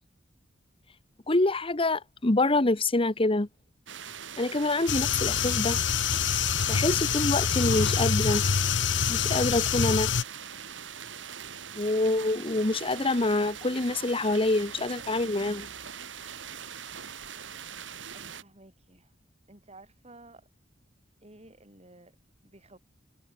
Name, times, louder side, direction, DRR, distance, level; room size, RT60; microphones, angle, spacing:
voice 1, 1.3-3.5 4.4-5.8 6.7-8.4 9.1-10.1 11.7-15.7, left 2 dB, 30° left, 1.2 m, -26 dB
sound 1, 3.9-18.4, right 8 dB, 90° right, 2.0 m, -42 dB
sound 2, 4.9-10.2, left 7 dB, 80° left, 0.9 m, -26 dB
voice 2, 18.1-19.1 19.5-20.5 21.2-22.1 22.4-22.8, right 2 dB, 35° right, 6.3 m, -53 dB
head